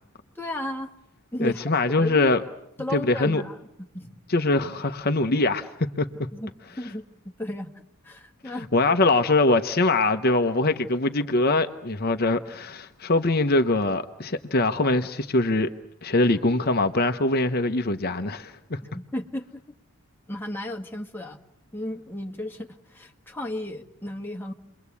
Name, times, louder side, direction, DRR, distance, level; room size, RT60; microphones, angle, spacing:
voice 1, 0.4-0.9 1.3-1.7 2.0-2.3 2.8-4.1 6.3-7.7 8.0-8.7 18.8-19.6 20.3-21.4 21.7-24.5, left 1 dB, 10° left, 1.9 m, -34 dB
voice 2, 1.4-2.4 2.9-3.4 4.3-6.1 8.7-15.7 16.0-18.8, left 2 dB, 45° left, 1.0 m, -23 dB
29.5 x 23.0 x 8.4 m
head